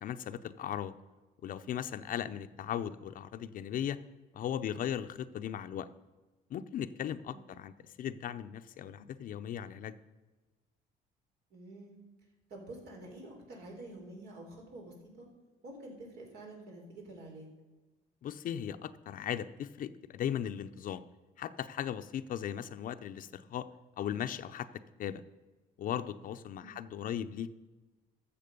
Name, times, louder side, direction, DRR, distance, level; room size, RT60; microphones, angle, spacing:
voice 1, 0.0-1.0 1.4-4.0 4.3-5.9 6.5-10.0 18.2-21.0 21.4-23.7 24.0-24.7 25.0-25.2 25.8-27.5, left 10 dB, 55° left, 11 dB, 0.5 m, -37 dB
voice 2, 7.3-7.7 11.5-12.0 12.5-15.3 15.6-17.5 26.6-26.9, right 1 dB, 80° right, 0 dB, 3.7 m, -48 dB
13.5 x 7.2 x 5.2 m, 1.2 s
cardioid pair, 110°, 17 cm